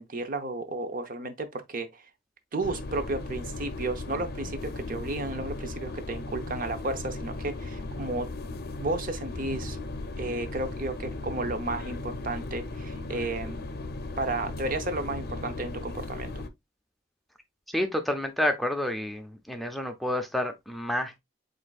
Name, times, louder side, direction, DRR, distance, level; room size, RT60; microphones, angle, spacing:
voice 1, 0.0-2.0 2.5-8.3 8.8-9.8 10.2-13.6 14.2-16.3, right 2 dB, 45° right, 0.7 m, -33 dB
sound 1, 2.6-16.5, left 2 dB, 55° left, 0.6 m, -37 dB
voice 2, 17.7-21.2, left 1 dB, ahead, 0.4 m, -29 dB
7.7 x 2.6 x 2.3 m
head